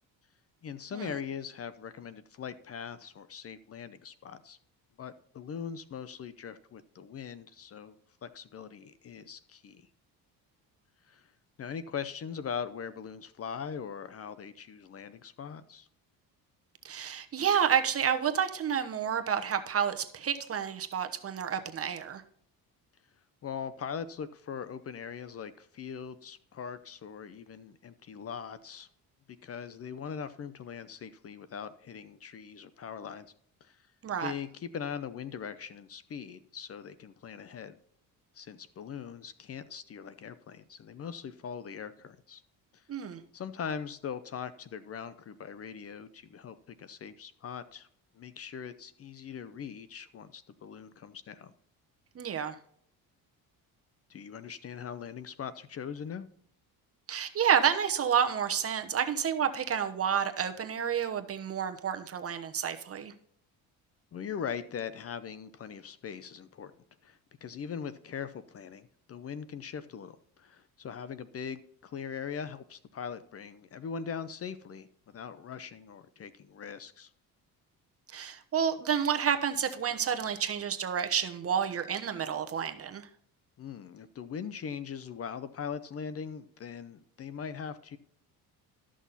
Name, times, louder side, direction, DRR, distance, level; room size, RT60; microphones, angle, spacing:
voice 1, 0.6-4.6 5.0-8.0 8.2-9.9 11.1-11.3 11.6-15.9 23.4-28.9 29.4-33.3 33.6-33.9 34.2-37.8 38.3-42.4 42.7-42.8 43.3-47.9 48.1-51.5 54.1-56.3 64.1-66.7 67.0-77.1 83.6-88.0, left 7 dB, 40° left, 14 dB, 0.6 m, -41 dB
voice 2, 16.8-22.2 34.0-34.3 42.9-43.2 52.1-52.6 57.1-63.1 78.1-83.1, right 8 dB, 40° right, 7 dB, 1.0 m, -30 dB
13.0 x 6.2 x 4.1 m, 0.64 s
cardioid pair, 110°, 38 cm